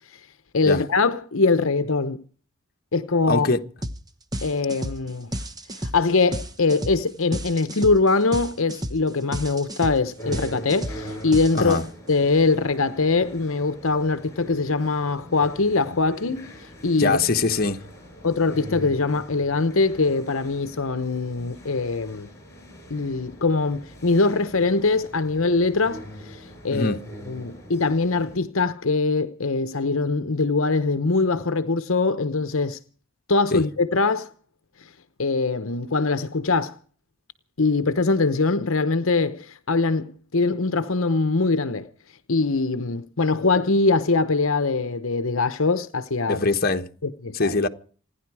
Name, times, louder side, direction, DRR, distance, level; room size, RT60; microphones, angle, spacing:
voice 1, 0.5-2.2 2.9-3.5 4.4-5.3 5.7-11.8 12.1-16.5 16.8-17.2 18.2-22.3 22.9-27.0 27.3-32.8 33.3-34.3 34.8-34.9 35.2-36.8 37.6-41.9 42.3-46.4 47.0-47.6, left 3 dB, 65° left, 0.9 m, -22 dB
voice 2, 3.3-3.6 11.5-11.9 17.0-17.8 26.7-27.0 33.5-33.6 46.3-46.9 47.3-47.7, left 3 dB, 40° left, 1.2 m, -22 dB
sound 1, 3.8-4.0 4.3-12.1, right 1 dB, 15° right, 1.1 m, -32 dB
sound 2, 10.2-28.4, equal, 15° left, 7.1 m, -42 dB
28.0 x 10.5 x 4.8 m
head